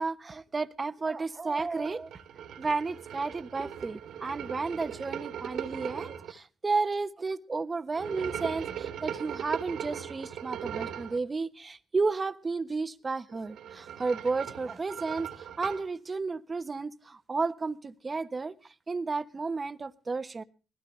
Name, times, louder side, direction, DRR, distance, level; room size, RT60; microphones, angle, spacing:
voice 1, 0.0-2.1 2.6-18.5 18.9-20.4, right 4 dB, 30° right, 1.2 m, -32 dB
sound 1, 1.8-6.3 7.9-11.2 13.3-15.9, right 9 dB, 75° right, 2.9 m, -39 dB
20.5 x 16.5 x 3.3 m
cardioid pair, 90°, 0 cm